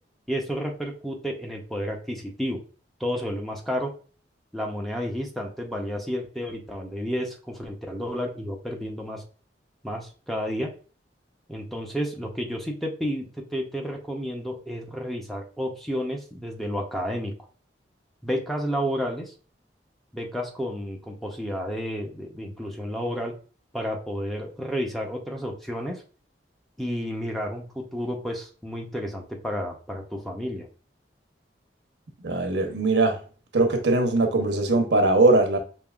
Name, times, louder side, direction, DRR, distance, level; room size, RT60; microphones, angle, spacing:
voice 1, 0.3-2.6 3.0-3.9 4.5-9.2 9.8-10.7 11.5-17.3 18.2-19.3 20.1-23.3 23.7-26.0 26.8-30.7, equal, ahead, 0.6 m, -31 dB
voice 2, 32.2-33.2 33.5-35.6, right 2 dB, 85° right, 0.9 m, -21 dB
5.3 x 2.8 x 2.3 m
head